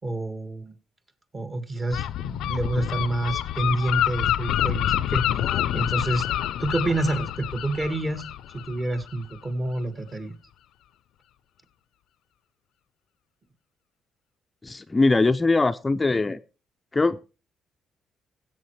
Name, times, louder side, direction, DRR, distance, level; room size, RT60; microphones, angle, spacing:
voice 1, 0.0-0.7 1.3-5.2 5.7-6.3 6.6-8.2 8.5-10.3, right 2 dB, 30° right, 9 dB, 2.0 m, -28 dB
Gull seagull, 1.9-9.4, left 11 dB, 85° left, 0.5 m, -27 dB
voice 2, 14.6-16.4 16.9-17.2, left 3 dB, 20° left, 10 dB, 0.4 m, -21 dB
16.5 x 7.8 x 3.2 m, 0.32 s
cardioid pair, 90°, 0 cm